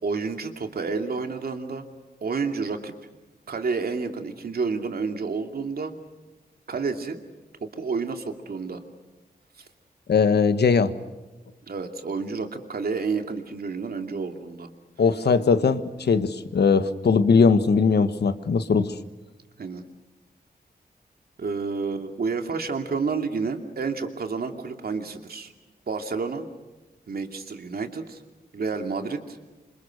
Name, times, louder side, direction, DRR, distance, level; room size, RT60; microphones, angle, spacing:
voice 1, 0.0-1.9 2.2-2.9 3.5-6.0 6.7-7.2 7.6-8.8 9.6-9.7 11.6-14.7 19.6-19.8 21.4-25.5 25.9-26.5 27.1-28.2 28.5-29.4, right 4 dB, 65° right, 5 dB, 2.7 m, -30 dB
voice 2, 10.1-10.9 15.0-18.9, left 5 dB, 85° left, 11 dB, 1.4 m, -20 dB
27.5 x 26.5 x 6.5 m, 1.2 s
wide cardioid pair, 130°, 17 cm